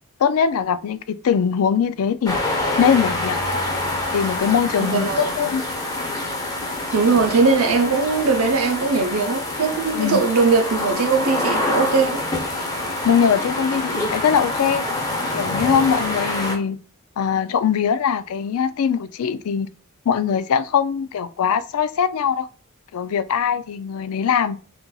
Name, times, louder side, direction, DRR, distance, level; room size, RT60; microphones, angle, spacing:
voice 1, 0.2-2.4 2.8-3.4 4.1-5.6 9.9-10.2 13.0-14.9 15.3-16.8 17.2-19.7 20.1-22.5 22.9-24.6, left 7 dB, 90° left, 0.4 m, -21 dB
sound 1, 2.3-16.6, left 2 dB, 15° left, 0.8 m, -26 dB
voice 2, 4.8-5.5 6.9-12.2, right 4 dB, 85° right, 0.7 m, -20 dB
5.8 x 2.6 x 2.3 m
head